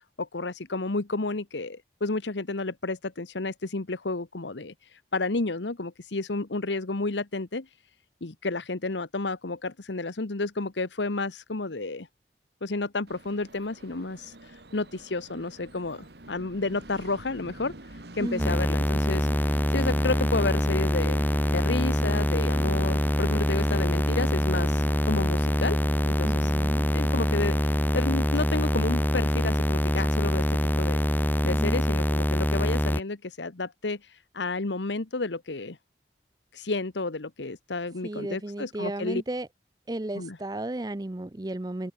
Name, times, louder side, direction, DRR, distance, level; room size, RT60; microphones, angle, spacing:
voice 1, 0.2-7.7 8.2-12.1 12.6-21.2 21.5-25.8 26.1-26.6 26.9-31.0 31.4-35.8 36.5-39.2 40.1-40.4, left 3 dB, 90° left, 1.2 m, -31 dB
Train, 13.1-31.5, right 1 dB, 70° right, 2.4 m, -44 dB
voice 2, 18.2-18.6 26.2-26.8 31.5-31.8 38.0-39.5 39.9-41.9, right 1 dB, 20° right, 0.5 m, -34 dB
sound 1, 18.4-33.0, equal, 10° left, 1.5 m, -25 dB
head